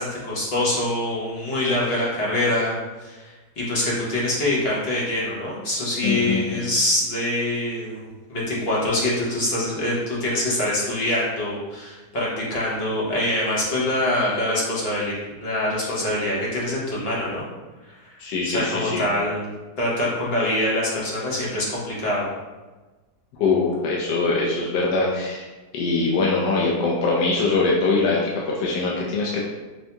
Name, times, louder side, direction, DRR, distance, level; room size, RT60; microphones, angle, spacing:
voice 1, 0.0-17.4 17.9-18.2 18.4-19.5 19.8-22.3, left 1 dB, 40° left, -6 dB, 1.1 m, -25 dB
voice 2, 6.0-6.6 18.2-19.1 23.4-25.4 25.7-29.5, left 3 dB, 75° left, -3 dB, 1.1 m, -22 dB
5.5 x 2.7 x 2.2 m, 1.2 s
omnidirectional pair, 1.8 m